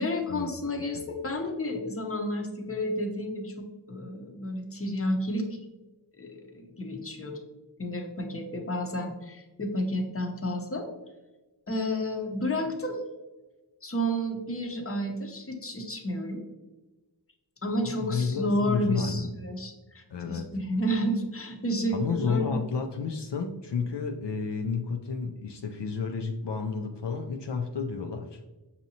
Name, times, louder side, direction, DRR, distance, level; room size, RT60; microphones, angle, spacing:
voice 1, 0.0-5.6 6.2-7.4 7.8-10.9 11.7-13.0 13.8-16.4 17.6-22.6, equal, 30° left, 3 dB, 0.7 m, -31 dB
voice 2, 17.8-19.3 20.1-20.5 21.9-28.4, left 5 dB, 70° left, 3 dB, 0.5 m, -31 dB
6.1 x 2.8 x 2.7 m, 1.1 s
wide cardioid pair, 50°, 43 cm